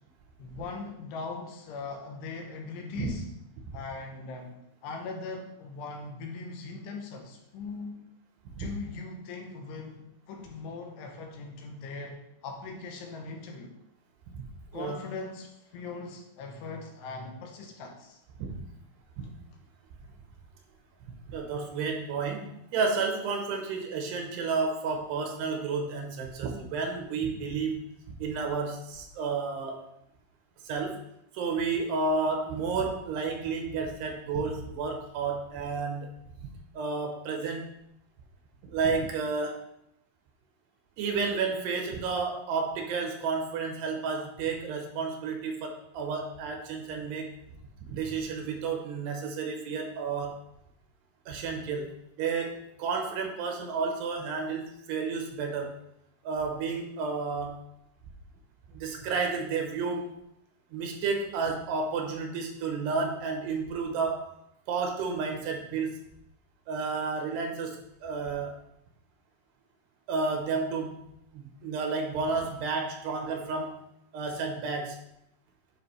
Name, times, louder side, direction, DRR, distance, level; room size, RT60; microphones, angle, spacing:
voice 1, 0.4-3.3 3.7-8.0 8.6-13.7 14.7-18.2, left 4 dB, 90° left, 3 dB, 3.1 m, -40 dB
voice 2, 21.3-29.9 30.6-31.0 31.3-36.1 36.4-37.7 38.6-39.6 41.0-47.3 47.9-50.4 51.3-55.8 56.2-57.6 58.7-60.1 60.7-64.2 64.7-66.0 66.7-68.6 70.1-71.0 71.3-73.8 74.1-75.0, right 4 dB, 85° right, 3 dB, 3.0 m, -31 dB
9.7 x 4.5 x 3.3 m, 0.79 s
omnidirectional pair, 4.8 m